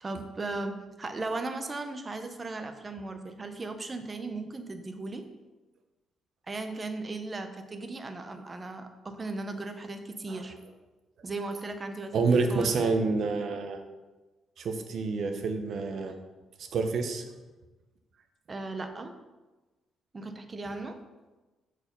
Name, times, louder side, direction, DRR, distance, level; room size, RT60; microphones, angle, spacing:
voice 1, 0.0-5.3 6.5-10.6 11.2-12.7 18.5-19.1 20.1-21.0, right 2 dB, 30° right, 7 dB, 0.8 m, -37 dB
voice 2, 12.1-13.8 14.6-16.2 16.6-17.2, right 4 dB, 60° right, 7 dB, 0.9 m, -28 dB
6.4 x 4.9 x 5.4 m, 1.2 s
cardioid pair, 90°, 0 cm